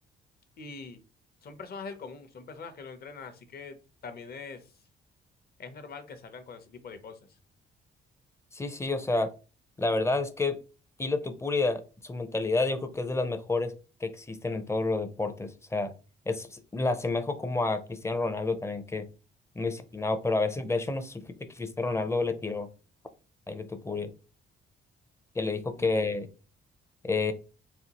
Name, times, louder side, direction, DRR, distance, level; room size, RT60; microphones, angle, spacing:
voice 1, 0.6-1.0 1.4-3.8 4.0-4.7 5.6-7.4 25.8-26.1, left 4 dB, 50° left, 8 dB, 0.8 m, -43 dB
voice 2, 8.5-9.3 9.8-10.6 11.0-13.7 14.0-15.9 16.3-19.1 19.6-22.7 23.5-24.1 25.4-26.3 27.0-27.3, left 3 dB, 15° left, 9 dB, 0.5 m, -29 dB
4.2 x 2.4 x 2.9 m, 0.33 s
cardioid pair, 90°, 20 cm